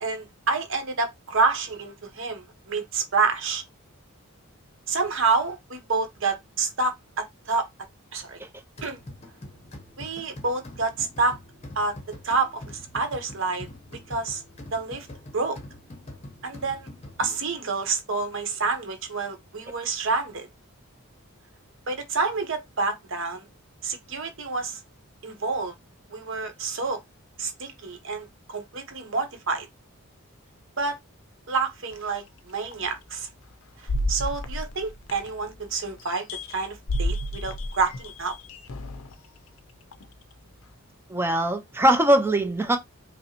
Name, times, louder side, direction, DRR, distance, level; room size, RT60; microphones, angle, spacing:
voice 1, 0.0-3.6 4.9-7.7 8.1-8.4 8.8-9.0 10.0-11.4 11.8-12.0 12.2-14.4 14.7-15.1 15.3-15.6 16.4-16.9 17.2-20.5 21.9-23.4 23.8-24.8 25.2-25.7 26.1-27.0 27.4-29.7 30.8-31.0 31.5-33.3 34.1-38.3, right 4 dB, 55° right, 0.9 m, -28 dB
sound 1, 8.8-17.7, left 1 dB, 30° left, 0.8 m, -44 dB
sound 2, 31.9-32.0 32.7-32.8 33.9-35.6 36.0-39.1 39.9-40.0, left 1 dB, 65° left, 0.5 m, -31 dB
voice 2, 41.1-42.8, right 1 dB, 10° right, 0.4 m, -21 dB
5.2 x 2.0 x 2.9 m
head